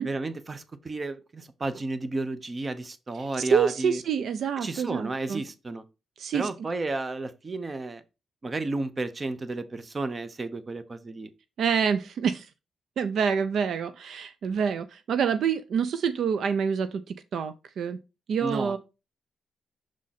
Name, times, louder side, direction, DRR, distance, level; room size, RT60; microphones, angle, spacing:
voice 1, 0.0-4.0 4.6-5.8 6.3-8.0 8.4-11.3 18.4-18.7, right 2 dB, 30° right, 0.7 m, -32 dB
voice 2, 3.2-5.4 6.2-6.5 11.6-12.5 13.0-18.0 18.3-18.8, right 6 dB, 70° right, 0.4 m, -27 dB
6.3 x 3.7 x 4.1 m
cardioid pair, 95°, 0 cm